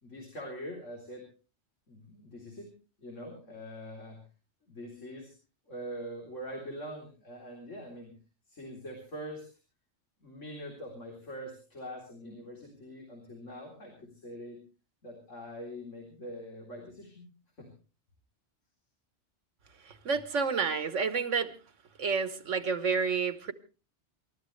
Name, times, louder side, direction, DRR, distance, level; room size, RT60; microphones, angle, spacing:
voice 1, 0.0-1.2 1.9-2.7 3.0-4.2 4.7-5.3 5.7-8.1 8.5-9.4 10.2-14.6 15.0-17.3 17.6-17.7, equal, 85° left, 0 dB, 4.0 m, -43 dB
voice 2, 19.9-21.5 22.0-23.5, right 5 dB, 80° right, 12 dB, 1.6 m, -29 dB
28.0 x 13.0 x 3.2 m, 0.34 s
omnidirectional pair, 1.2 m